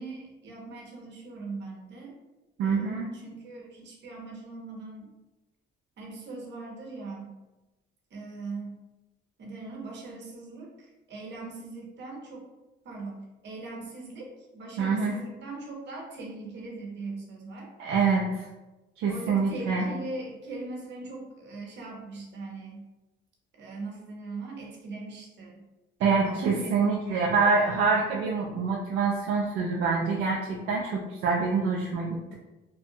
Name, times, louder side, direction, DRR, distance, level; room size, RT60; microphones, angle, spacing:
voice 1, 0.0-2.2 2.6-5.1 6.0-7.4 8.1-8.8 9.4-12.4 12.8-17.7 19.0-22.9 23.5-25.6 26.0-26.8 27.1-27.8, right 3 dB, 60° right, -1 dB, 0.9 m, -40 dB
voice 2, 2.6-3.1 14.8-15.2 17.8-18.5 19.0-19.9 26.0-32.3, right 4 dB, 80° right, -2 dB, 0.4 m, -26 dB
2.7 x 2.2 x 2.7 m, 1.1 s
cardioid pair, 90°, 20 cm